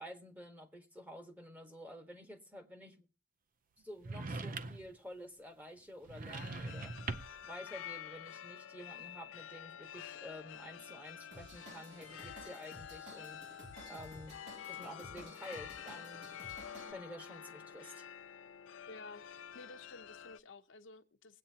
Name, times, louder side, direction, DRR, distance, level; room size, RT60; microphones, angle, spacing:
voice 1, 0.0-3.1 3.8-7.0 7.4-13.4 13.9-14.4 14.7-16.3 16.9-18.1, equal, 10° right, 1.3 m, -50 dB
sound 1, 4.0-5.0 6.0-7.5, right 3 dB, 45° right, 0.6 m, -42 dB
sound 2, 6.3-20.4, left 9 dB, 90° left, 0.5 m, -49 dB
Drum kit / Drum, 11.3-16.9, equal, 60° right, 2.9 m, -54 dB
voice 2, 18.9-21.4, left 3 dB, 70° left, 0.8 m, -53 dB
21.5 x 8.6 x 2.8 m
head